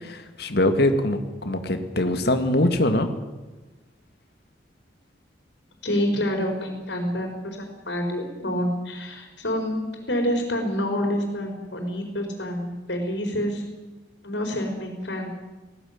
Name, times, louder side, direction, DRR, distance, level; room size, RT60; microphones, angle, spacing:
voice 1, 0.0-3.1, left 1 dB, 60° left, 8 dB, 2.1 m, -23 dB
voice 2, 5.8-13.6 14.2-15.3, equal, 80° left, 3 dB, 4.7 m, -27 dB
19.0 x 16.5 x 9.7 m, 1.2 s
head